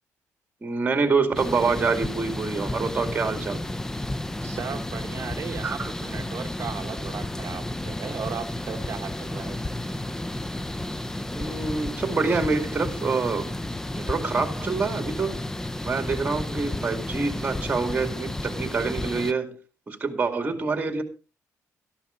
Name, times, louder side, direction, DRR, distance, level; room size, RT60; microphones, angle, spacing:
voice 1, 0.6-3.6 5.6-5.9 11.3-13.5 14.0-15.4 15.8-19.6 19.9-21.0, right 4 dB, 25° right, 7 dB, 2.3 m, -26 dB
sound 1, 1.3-19.3, left 1 dB, 10° left, 0.6 m, -32 dB
voice 2, 4.4-9.6, right 7 dB, 55° right, 4 dB, 1.0 m, -36 dB
13.0 x 11.0 x 3.8 m, 0.33 s
cardioid pair, 115°, 6 cm